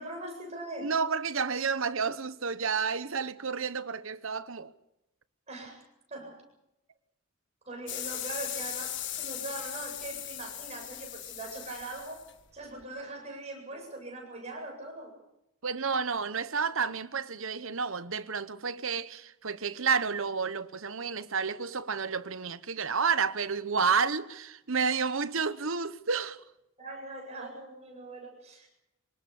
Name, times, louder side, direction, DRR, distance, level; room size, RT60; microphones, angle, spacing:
voice 1, 0.0-0.9 5.5-6.4 7.7-12.2 12.5-15.1 26.8-28.7, right 2 dB, 30° right, 8.0 m, -41 dB
voice 2, 0.8-4.7 15.6-26.4, right 5 dB, 60° right, 1.0 m, -30 dB
sound 1, 7.9-12.8, left 12 dB, 55° left, 1.5 m, -38 dB
25.5 x 19.5 x 7.0 m
head